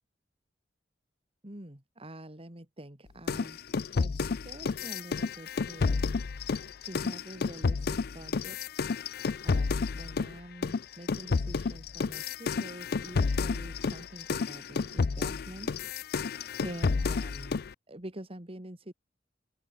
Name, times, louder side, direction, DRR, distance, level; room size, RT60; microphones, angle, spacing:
voice 1, 1.4-3.6 3.9-6.1 6.8-8.6 9.4-15.7 16.6-17.6 17.9-18.9, right 1 dB, 30° right, 2.8 m, -46 dB
sound 1, 3.3-10.3 10.6-17.7, left 4 dB, 60° left, 0.5 m, -31 dB
open air
head